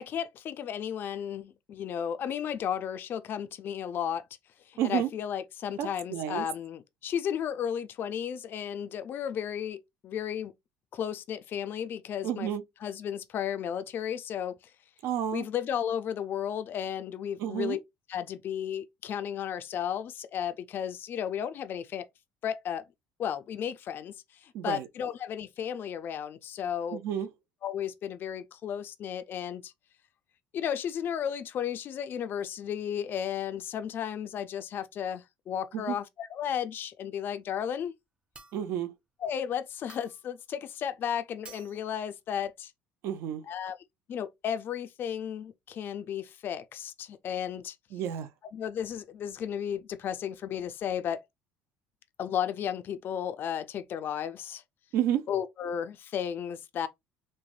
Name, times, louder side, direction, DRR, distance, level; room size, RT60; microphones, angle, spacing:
voice 1, 0.0-4.2 4.7-10.5 10.9-12.5 12.8-14.6 15.3-17.8 18.1-22.1 22.4-22.8 23.2-27.0 27.6-29.7 30.5-37.9 39.2-42.7 43.5-43.8 44.1-47.8 48.5-51.2 52.2-54.6 55.3-56.9, left 9 dB, 45° left, 0.3 m, -34 dB
voice 2, 4.8-5.1 5.8-6.5 12.2-12.6 15.0-15.5 17.4-17.8 24.5-24.9 26.9-27.3 35.7-36.0 38.5-38.9 43.0-43.4 47.9-48.3 54.9-55.2, right 10 dB, 65° right, 0.4 m, -30 dB
sound 1, 38.3-38.8 39.9-40.3 41.4-41.9, right 3 dB, 20° right, 0.6 m, -51 dB
3.2 x 2.0 x 2.4 m
supercardioid pair, 95°, 5 cm